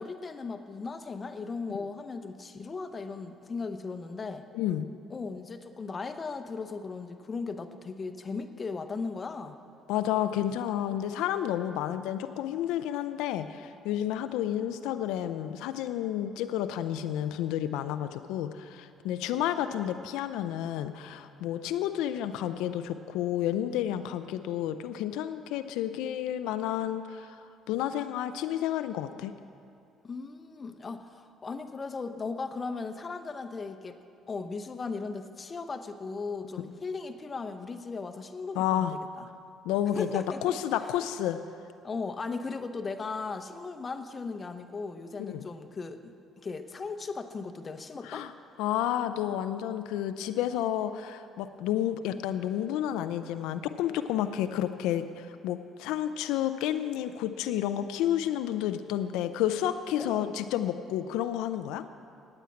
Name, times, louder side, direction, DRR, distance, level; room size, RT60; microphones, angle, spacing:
voice 1, 0.0-4.5 5.1-9.6 30.0-33.9 34.3-38.9 39.2-39.3 40.0-40.6 41.8-48.3 60.0-60.3, left 4 dB, 35° left, 8 dB, 0.9 m, -37 dB
voice 2, 4.5-4.9 9.9-29.3 38.5-39.0 39.6-41.4 45.3-45.4 48.0-48.3 48.6-61.8, left 11 dB, 85° left, 10 dB, 0.4 m, -31 dB
9.2 x 9.0 x 8.6 m, 2.5 s
supercardioid pair, 80°, 0 cm